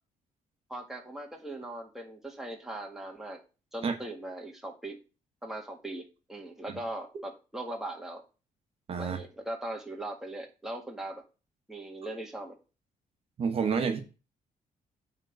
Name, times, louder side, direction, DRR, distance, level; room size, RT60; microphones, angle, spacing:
voice 1, 0.7-3.4 3.7-5.0 5.4-8.2 9.0-11.2 11.7-12.6, right 1 dB, 5° right, 1.9 m, -39 dB
voice 2, 8.9-9.2 13.4-14.0, right 6 dB, 45° right, 1.3 m, -28 dB
9.0 x 3.9 x 6.7 m
cardioid pair, 150°, 14 cm